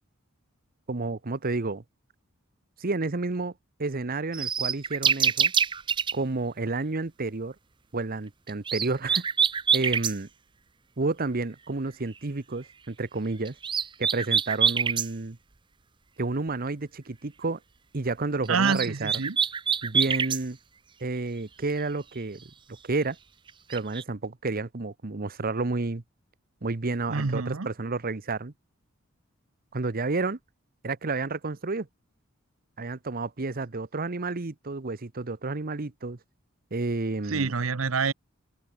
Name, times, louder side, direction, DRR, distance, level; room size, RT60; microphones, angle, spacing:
voice 1, 0.9-1.8 2.8-3.5 3.8-5.5 6.1-7.5 7.9-9.2 9.7-10.3 11.0-13.5 14.0-15.4 16.2-17.6 17.9-19.1 19.8-20.6 21.0-22.4 22.8-23.2 23.7-26.0 26.6-28.5 29.7-30.4 30.8-31.9 32.8-36.2 36.7-37.5, right 3 dB, 45° right, 1.0 m, -30 dB
sound 1, 4.3-6.1 8.5-10.1 13.5-15.1 18.5-20.4 23.5-24.0, right 7 dB, 25° right, 0.5 m, -25 dB
voice 2, 18.5-19.4 27.1-27.7 37.3-38.1, right 5 dB, 80° right, 0.9 m, -27 dB
head